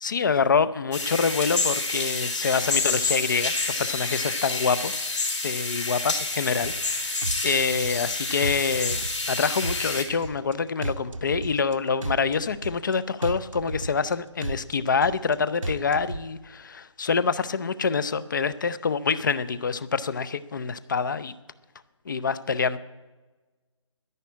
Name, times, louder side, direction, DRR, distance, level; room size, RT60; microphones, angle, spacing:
voice 1, 0.0-5.0 5.4-6.0 6.4-21.3 22.1-22.8, left 5 dB, 40° left, 16 dB, 0.6 m, -26 dB
sound 1, 0.9-10.0, left 3 dB, 70° left, 4.6 m, -28 dB
sound 2, 6.6-6.9 7.2-8.1 8.4-9.3 9.6-10.5 10.8-11.7 12.0-12.9 13.2-14.1 14.4-15.3 15.6-16.2, right 2 dB, 90° right, 1.0 m, -33 dB
11.0 x 11.0 x 8.5 m, 1.2 s
figure-of-eight pair, 150°, 16 cm